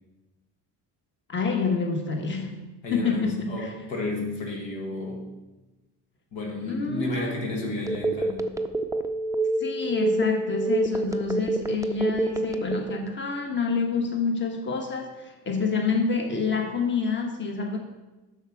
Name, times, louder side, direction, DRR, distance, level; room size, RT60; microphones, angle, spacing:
voice 1, 1.3-2.6 2.9-3.7 6.7-7.2 9.6-17.8, left 4 dB, 25° left, 3 dB, 1.2 m, -27 dB
voice 2, 2.8-5.3 6.3-8.5, left 2 dB, 80° left, 0 dB, 1.8 m, -32 dB
Telephone, 7.9-13.1, right 2 dB, 10° right, 0.4 m, -26 dB
6.4 x 6.2 x 4.5 m, 1.1 s
supercardioid pair, 75°, 46 cm